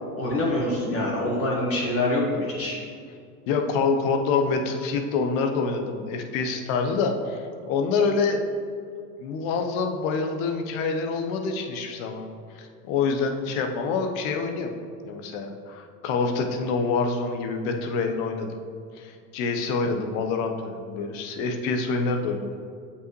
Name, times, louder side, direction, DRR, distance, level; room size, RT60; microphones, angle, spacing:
voice 1, 0.2-2.8, left 1 dB, 30° left, -4 dB, 1.6 m, -25 dB
voice 2, 3.5-8.4 9.2-12.2 12.5-14.7 15.0-18.6 18.9-22.5, left 4 dB, 65° left, 5 dB, 0.9 m, -26 dB
7.7 x 5.6 x 3.1 m, 2.3 s
hypercardioid pair, 90°, 45 cm